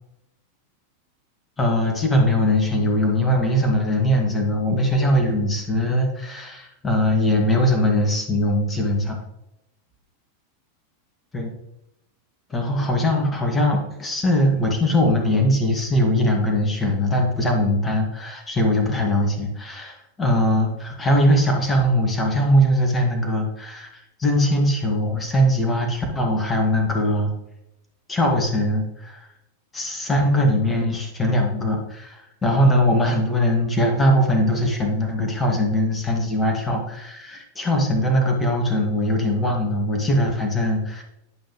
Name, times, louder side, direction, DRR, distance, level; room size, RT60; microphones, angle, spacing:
voice 1, 1.6-9.2 11.3-11.5 12.5-23.9 24.2-27.3 28.1-29.3 29.7-41.0, left 1 dB, 15° left, 1 dB, 1.8 m, -21 dB
11.0 x 5.5 x 3.0 m, 0.89 s
figure-of-eight pair, 90°, 0 cm